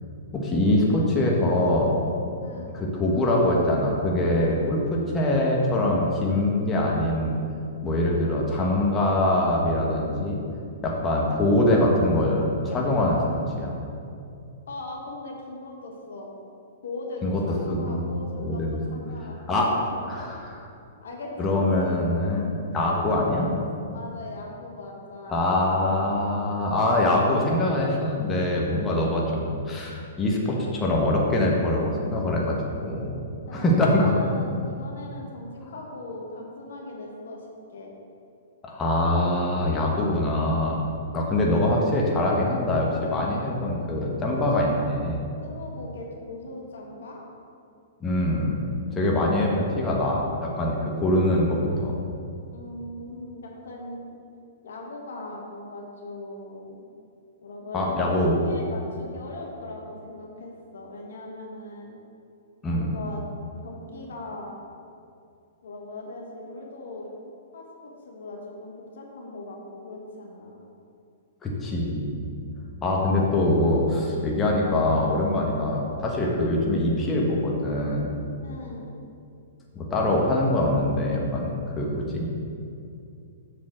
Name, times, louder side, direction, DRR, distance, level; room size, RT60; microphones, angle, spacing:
voice 1, 0.3-2.0 2.7-7.3 7.8-10.4 10.8-13.2 13.6-13.7 17.2-17.4 17.7-18.8 19.5-19.7 20.1-20.6 21.4-23.5 25.3-33.2 33.5-34.1 38.6-45.2 48.0-48.6 48.9-51.9 57.7-58.4 62.6-62.9 71.4-72.2 72.8-78.1 79.7-82.3, left 1 dB, 20° left, -3 dB, 1.3 m, -23 dB
voice 2, 2.4-2.7 14.7-16.3 16.8-20.2 21.0-22.0 23.8-25.4 33.5-37.9 41.1-41.4 45.4-47.2 52.5-54.1 54.6-56.8 57.4-58.2 58.4-61.9 62.7-63.3 63.6-64.6 65.6-67.1 67.5-70.6 78.4-78.9, left 2 dB, 75° left, -1 dB, 1.5 m, -39 dB
7.5 x 4.2 x 6.3 m, 2.5 s
hypercardioid pair, 120°, 0 cm